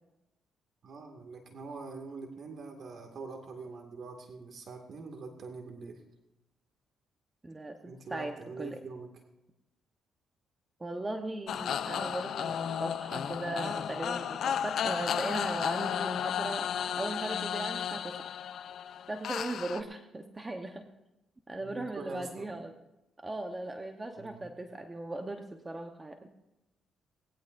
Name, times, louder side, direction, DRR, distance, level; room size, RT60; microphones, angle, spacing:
voice 1, 0.8-6.0 7.9-9.1 21.6-22.5 24.2-24.5, right 4 dB, 55° right, 4 dB, 2.1 m, -44 dB
voice 2, 7.4-8.8 10.8-18.3 19.1-20.9 21.5-22.7 23.2-26.3, right 2 dB, 20° right, 5 dB, 1.0 m, -38 dB
sound 1, 11.5-19.8, left 8 dB, 65° left, 0.6 m, -33 dB
19.0 x 17.0 x 2.6 m, 0.94 s
cardioid pair, 90°, 0 cm